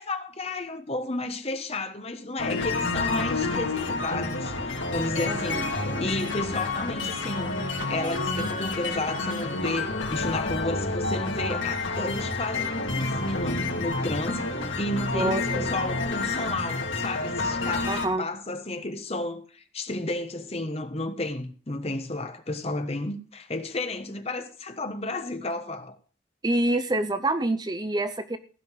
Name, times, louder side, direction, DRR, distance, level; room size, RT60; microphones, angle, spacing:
voice 1, 0.0-26.0, left 2 dB, 35° left, 1.3 m, -32 dB
sound 1, 2.4-18.1, left 3 dB, 90° left, 2.5 m, -29 dB
voice 2, 5.3-5.6 15.1-15.6 17.8-18.3 26.4-28.4, right 1 dB, 20° right, 0.6 m, -27 dB
15.5 x 5.7 x 7.4 m
head